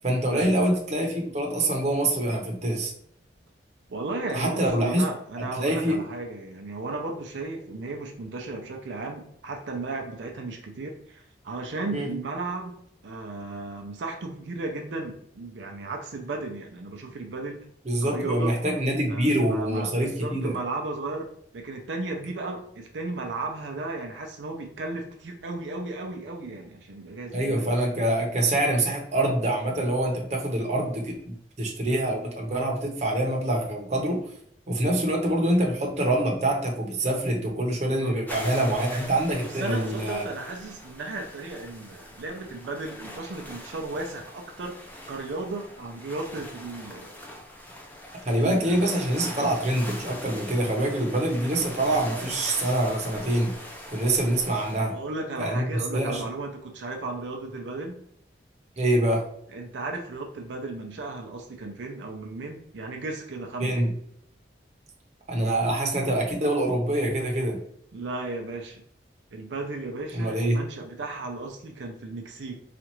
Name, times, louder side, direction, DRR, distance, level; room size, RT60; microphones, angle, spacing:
voice 1, 0.0-2.9 4.3-5.0 5.4-6.0 11.9-12.1 17.8-20.5 27.3-34.2 34.7-40.2 48.2-53.5 53.9-55.0 55.4-55.6 55.9-56.3 58.8-59.2 63.6-63.9 65.3-67.6 70.1-70.6, right 1 dB, 40° right, 0 dB, 0.8 m, -25 dB
voice 2, 3.9-12.8 13.0-17.6 18.0-18.5 19.1-21.3 21.5-27.7 37.7-38.7 39.4-44.8 45.1-47.2 48.4-48.9 49.4-49.5 54.8-58.0 59.5-63.8 67.9-68.8 69.3-72.6, right 2 dB, 85° right, 2 dB, 0.5 m, -35 dB
sound 1, 38.3-54.8, left 1 dB, 10° left, 0.5 m, -42 dB
4.2 x 2.4 x 2.9 m, 0.68 s
head